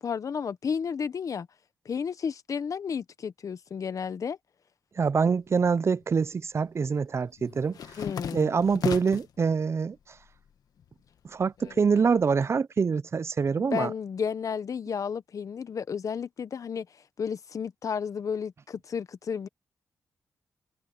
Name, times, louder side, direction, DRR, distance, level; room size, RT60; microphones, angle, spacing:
voice 1, 0.0-1.5 1.8-4.4 8.0-8.5 13.7-16.9 17.2-19.5, left 6 dB, 60° left, 1.2 m, -32 dB
voice 2, 5.0-7.8 8.3-10.2 11.2-13.9, right 5 dB, 45° right, 0.5 m, -25 dB
sound 1, 5.5-6.3 6.6-9.4 9.8-10.5 10.8-12.5, left 8 dB, 75° left, 1.5 m, -37 dB
cardioid pair, 70°, 6 cm